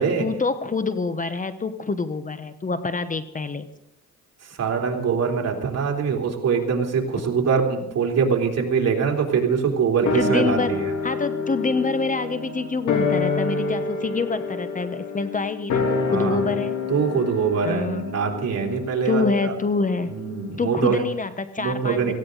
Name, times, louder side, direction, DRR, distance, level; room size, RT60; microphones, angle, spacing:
voice 1, 0.2-3.7 10.1-10.8 11.0-16.8 17.6-18.1 19.0-20.1 20.6-22.1, left 4 dB, 25° left, 11 dB, 1.0 m, -26 dB
voice 2, 4.6-10.9 16.1-16.4 16.9-19.5 20.1-21.0 21.6-22.1, right 6 dB, 55° right, 1 dB, 3.3 m, -23 dB
sound 1, 10.1-20.7 20.9-21.0, left 4 dB, 75° left, 3.1 m, -28 dB
18.0 x 15.5 x 4.0 m, 0.84 s
cardioid pair, 90°, 30 cm